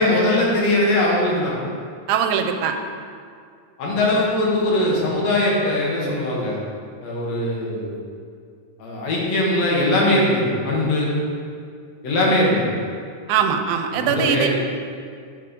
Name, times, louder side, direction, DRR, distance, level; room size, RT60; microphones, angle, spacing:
voice 1, 0.0-1.6 3.8-6.6 7.0-8.0 8.8-11.1 12.0-12.7 13.9-14.5, left 1 dB, 65° left, -4 dB, 2.3 m, -20 dB
voice 2, 2.1-2.8 13.3-14.5, right 8 dB, 85° right, 6 dB, 2.0 m, -21 dB
7.8 x 4.3 x 5.1 m, 2.2 s
omnidirectional pair, 3.5 m